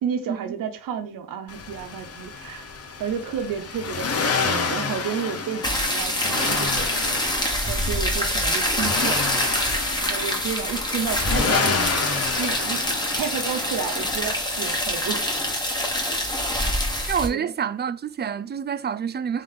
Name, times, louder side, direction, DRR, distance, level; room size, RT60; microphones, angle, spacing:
voice 1, 0.0-2.7 3.0-7.2 7.7-9.4 10.0-12.1 12.4-12.9 13.1-15.3 17.3-17.5, right 7 dB, 85° right, 0.8 m, -31 dB
Accelerating revving vroom, 1.5-15.5, left 5 dB, 45° left, 0.8 m, -30 dB
sound 1, 5.6-17.3, left 1 dB, 15° left, 1.3 m, -25 dB
voice 2, 17.1-19.4, right 7 dB, 30° right, 0.4 m, -27 dB
3.7 x 3.2 x 3.7 m
cardioid pair, 70°, 33 cm